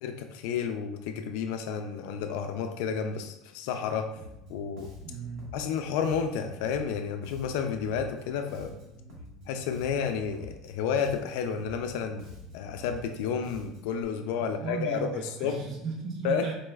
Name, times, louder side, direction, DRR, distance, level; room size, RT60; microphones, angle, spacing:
voice 1, 0.0-4.1 4.5-4.9 5.5-8.7 9.5-12.3 12.5-15.6 16.2-16.5, left 6 dB, 70° left, 6 dB, 0.3 m, -31 dB
Bass guitar, 4.2-14.0, left 1 dB, 60° right, 1.1 m, -48 dB
voice 2, 5.0-5.5 14.4-16.5, right 5 dB, 40° right, -1 dB, 0.6 m, -36 dB
4.0 x 2.2 x 3.1 m, 0.87 s
cardioid pair, 170°, 0 cm